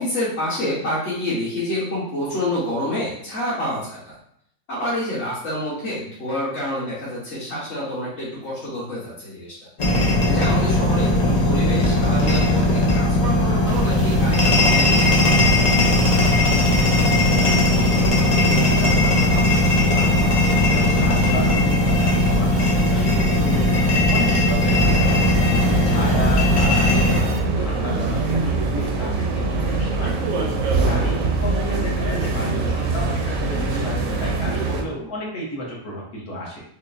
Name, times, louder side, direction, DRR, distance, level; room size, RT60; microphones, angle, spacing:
voice 1, 0.0-4.2 4.7-9.7 10.3-15.5 20.9-21.0 25.7-25.9, left 1 dB, 45° left, -10 dB, 1.4 m, -28 dB
sound 1, 9.8-27.2, left 2 dB, 85° left, 0.3 m, -18 dB
sound 2, 13.7-27.4, right 3 dB, 90° right, 1.2 m, -30 dB
voice 2, 16.8-20.3 20.7-25.2 25.8-30.2 30.8-36.6, equal, 65° left, -3 dB, 1.4 m, -33 dB
sound 3, 24.7-34.8, right 3 dB, 70° right, 0.9 m, -23 dB
4.9 x 2.1 x 2.5 m, 0.71 s
omnidirectional pair, 1.7 m